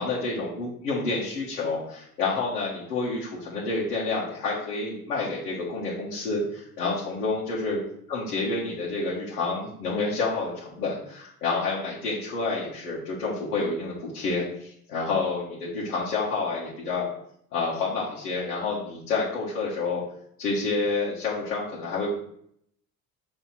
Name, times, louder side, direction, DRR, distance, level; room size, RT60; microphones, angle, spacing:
voice 1, 0.0-7.8 8.1-17.1 17.5-20.0 20.4-22.1, left 3 dB, 80° left, -7 dB, 1.6 m, -29 dB
5.4 x 3.4 x 5.8 m, 0.69 s
hypercardioid pair, 60°, 45 cm